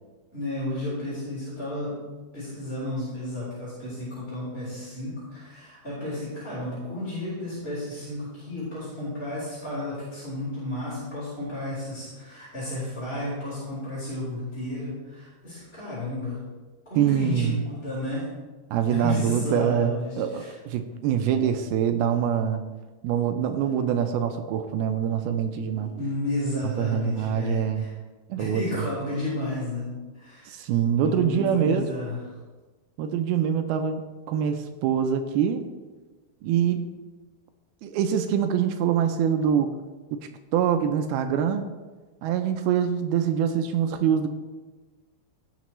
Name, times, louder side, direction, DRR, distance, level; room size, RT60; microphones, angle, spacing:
voice 1, 0.3-2.0 2.3-16.4 16.9-18.3 18.9-20.5 21.4-21.5 25.7-27.9 28.4-29.9 30.1-30.6 31.0-32.2, left 1 dB, 15° left, -11 dB, 3.7 m, -32 dB
voice 2, 17.0-17.6 18.7-22.6 23.0-25.9 26.8-27.9 28.3-28.8 30.5-31.9 33.0-35.6 36.4-36.9 37.8-39.7 40.5-41.7 42.2-44.3, right 8 dB, 80° right, 7 dB, 2.3 m, -24 dB
17.5 x 6.7 x 3.1 m, 1.3 s
omnidirectional pair, 4.8 m